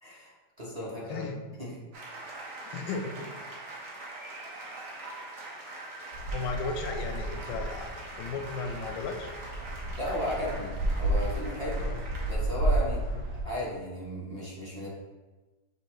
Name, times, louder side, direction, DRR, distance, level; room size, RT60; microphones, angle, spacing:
voice 1, 0.0-1.3 1.6-1.8 10.0-11.9 12.3-13.0 13.4-14.9, equal, 30° right, -6 dB, 0.7 m, -35 dB
sound 1, 1.9-12.3, right 2 dB, 55° right, 1.2 m, -43 dB
voice 2, 2.7-3.4 6.3-9.3 11.8-12.0, left 4 dB, 85° left, 5 dB, 1.3 m, -35 dB
sound 2, 6.1-13.4, right 1 dB, 75° right, 1.3 m, -32 dB
6.2 x 2.8 x 3.0 m, 1.2 s
omnidirectional pair, 1.9 m